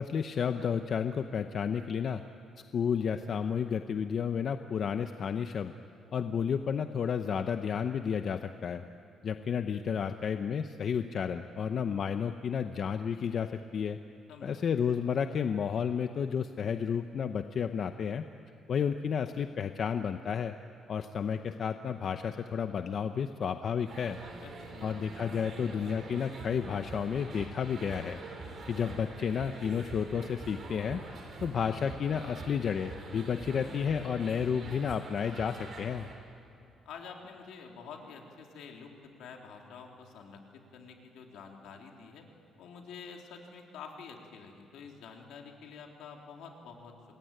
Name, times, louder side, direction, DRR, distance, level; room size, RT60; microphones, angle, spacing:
voice 1, 0.0-2.2 2.7-5.7 6.1-8.8 9.2-14.0 14.4-18.2 18.7-20.5 20.9-24.2 24.8-28.2 28.7-31.0 31.4-36.1, left 7 dB, 45° left, 8 dB, 0.8 m, -31 dB
voice 2, 14.3-14.6 24.4-24.9 36.9-40.4 40.7-42.2 42.6-46.9, left 5 dB, 75° left, 1 dB, 3.7 m, -48 dB
sound 1, 23.9-36.1, right 3 dB, 40° right, 4.7 m, -45 dB
27.5 x 21.5 x 9.1 m, 2.7 s
cardioid pair, 150°, 0 cm